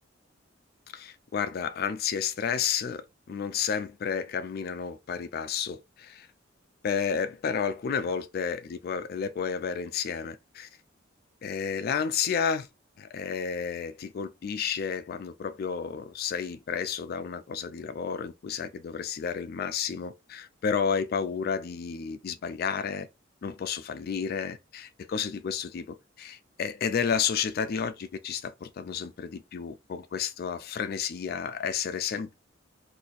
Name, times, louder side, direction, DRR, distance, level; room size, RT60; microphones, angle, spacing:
voice 1, 0.9-6.3 6.8-10.7 11.4-12.7 13.0-23.1 23.4-32.3, left 7 dB, 50° left, 0.3 m, -31 dB
4.0 x 2.6 x 2.4 m
head